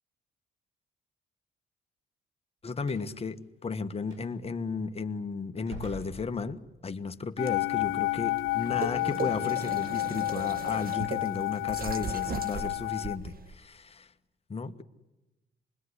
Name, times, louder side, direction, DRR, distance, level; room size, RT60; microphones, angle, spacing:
voice 1, 2.6-14.1 14.5-14.8, left 4 dB, 30° left, 7 dB, 1.5 m, -34 dB
Slam, 2.8-3.1 4.0-4.2 5.6-6.9, right 1 dB, 80° right, 7.9 m, -45 dB
sound 1, 7.4-13.2, left 20 dB, 80° left, 1.0 m, -31 dB
sound 2, 7.4-13.5, right 4 dB, 50° right, 1.7 m, -39 dB
27.0 x 21.0 x 9.9 m, 1.0 s
cardioid pair, 90°, 20 cm